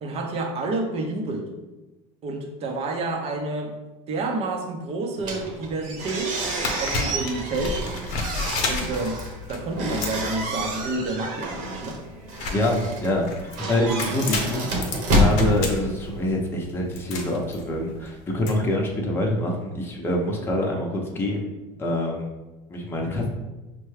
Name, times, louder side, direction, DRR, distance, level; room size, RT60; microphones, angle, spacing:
voice 1, 0.0-1.5 2.2-3.8 4.1-6.4 6.8-7.8 8.7-9.2 9.5-12.0, right 2 dB, 40° right, 3 dB, 0.7 m, -29 dB
sound 1, 5.2-16.3, equal, 60° right, 1.0 m, -28 dB
sound 2, 5.9-18.5, left 4 dB, 55° left, 0.9 m, -33 dB
voice 2, 12.5-13.3 13.6-14.8 15.1-21.5 21.8-22.3 22.7-23.3, left 1 dB, 15° left, -2 dB, 0.7 m, -25 dB
5.5 x 2.2 x 3.2 m, 1.1 s
supercardioid pair, 120°, 15 cm